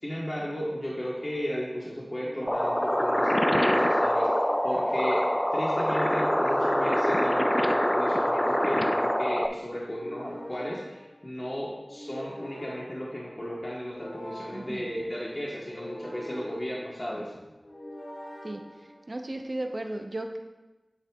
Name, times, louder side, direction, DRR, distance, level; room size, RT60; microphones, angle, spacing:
voice 1, 0.0-5.2 5.5-17.3, equal, 35° left, -5 dB, 1.3 m, -34 dB
sound 1, 1.0-19.4, equal, 85° left, 2.1 m, -45 dB
sound 2, 2.5-9.5, equal, 15° left, 0.4 m, -25 dB
voice 2, 14.5-14.9 17.1-17.2 18.4-18.6 19.1-20.4, right 1 dB, 55° right, 4 dB, 0.8 m, -35 dB
9.5 x 7.7 x 2.4 m, 1.1 s
wide cardioid pair, 50°, 0 cm